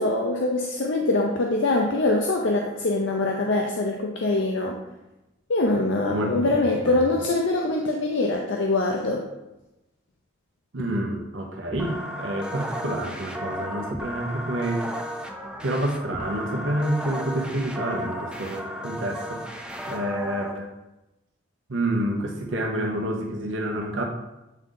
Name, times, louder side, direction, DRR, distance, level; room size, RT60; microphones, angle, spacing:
voice 1, 0.0-4.8 5.5-9.2, left 2 dB, 75° left, 0 dB, 0.6 m, -23 dB
voice 2, 6.1-6.5 6.8-7.0 10.7-14.9 15.6-19.4 19.9-20.7 21.7-24.0, right 1 dB, 80° right, 1 dB, 0.9 m, -28 dB
sound 1, 11.7-20.5, equal, 5° right, 0.4 m, -34 dB
8.5 x 3.8 x 3.9 m, 0.98 s
head